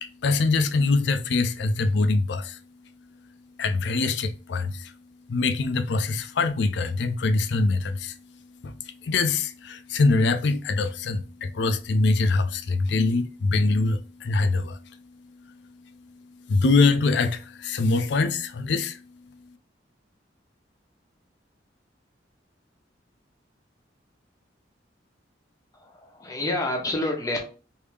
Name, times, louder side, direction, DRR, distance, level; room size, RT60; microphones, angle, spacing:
voice 1, 0.0-2.6 3.6-4.9 5.3-8.2 8.6-8.7 9.0-14.8 16.5-19.0, left 3 dB, 65° left, 0.4 m, -23 dB
voice 2, 25.7-27.4, left 1 dB, 20° left, 0.8 m, -28 dB
3.3 x 2.6 x 3.3 m
head